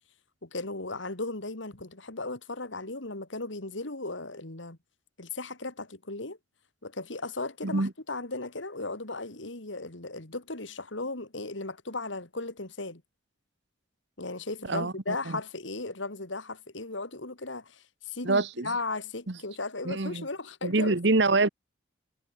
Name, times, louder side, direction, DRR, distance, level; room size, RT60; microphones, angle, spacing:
voice 1, 0.4-4.8 5.2-6.4 6.8-13.0 14.2-21.0, left 3 dB, 75° left, 2.8 m, -36 dB
voice 2, 14.7-15.4 18.2-18.7 19.3-19.4 19.8-20.2 20.6-21.5, right 3 dB, 65° right, 1.2 m, -26 dB
head